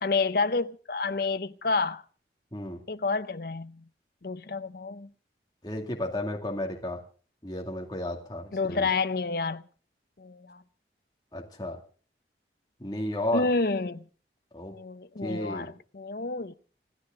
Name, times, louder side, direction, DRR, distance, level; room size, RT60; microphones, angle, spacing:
voice 1, 0.0-2.0 2.9-3.9 4.2-5.1 8.5-9.6 10.2-10.6 13.3-14.1 14.7-16.5, left 3 dB, 55° left, 0.7 m, -29 dB
voice 2, 5.6-7.0 7.4-8.9 11.3-11.8 12.8-13.5 14.5-14.7 15.2-15.7, left 1 dB, 20° left, 2.3 m, -33 dB
27.5 x 11.5 x 3.8 m
head